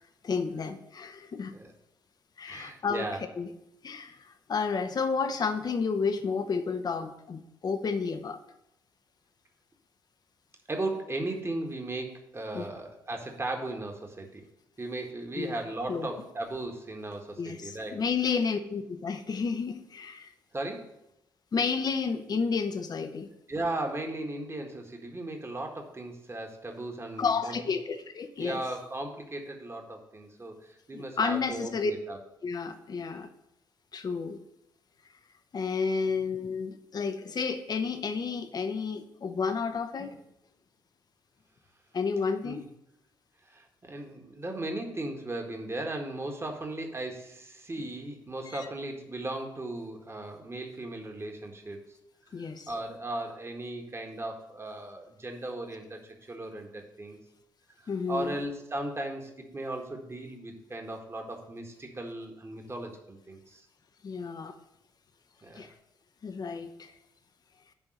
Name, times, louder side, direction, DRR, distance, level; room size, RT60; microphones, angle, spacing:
voice 1, 0.2-1.6 2.4-3.1 3.4-3.5 3.8-8.4 12.5-12.7 15.4-15.6 15.9-16.1 17.4-20.3 21.5-23.3 27.2-28.6 30.9-31.9 32.4-33.3 33.9-34.4 35.5-40.2 41.9-42.6 48.5-48.7 52.3-52.7 57.9-58.3 64.0-64.6 65.5-65.7 66.2-66.9, left 5 dB, 40° left, 8 dB, 0.8 m, -31 dB
voice 2, 2.5-3.2 10.7-14.4 14.8-18.0 20.5-20.9 23.5-27.6 28.4-32.2 36.0-36.2 42.4-42.7 43.5-51.9 52.4-57.2 57.8-63.6 65.4-65.7, right 2 dB, 25° right, 3 dB, 1.6 m, -37 dB
10.5 x 3.7 x 6.4 m, 0.83 s
hypercardioid pair, 45°, 10 cm